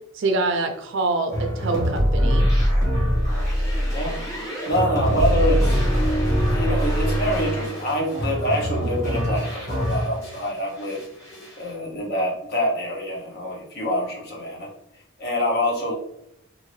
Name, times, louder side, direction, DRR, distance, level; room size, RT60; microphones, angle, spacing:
voice 1, 0.1-2.5, right 3 dB, 55° right, 6 dB, 0.4 m, -25 dB
sound 1, 1.3-10.5 10.8-11.6, equal, 15° left, 0.8 m, -23 dB
voice 2, 3.9-5.8 6.4-11.0 11.6-14.7 15.2-15.9, equal, 45° left, -1 dB, 0.8 m, -26 dB
2.7 x 2.5 x 3.1 m, 0.78 s
head